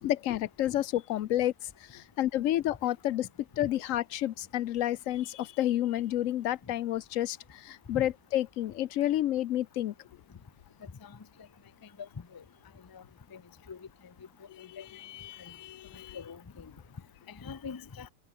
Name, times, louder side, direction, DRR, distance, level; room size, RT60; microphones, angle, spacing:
voice 1, 0.0-1.5 1.9-3.3 3.6-7.4 7.6-9.9 14.6-16.2, left 13 dB, 80° left, 1.0 m, -30 dB
voice 2, 12.0-12.4 12.9-13.0 13.3-13.4 13.7-13.8 14.8-14.9 16.1-16.7 17.3-18.1, left 5 dB, 30° left, 0.4 m, -42 dB
omnidirectional pair, 1.4 m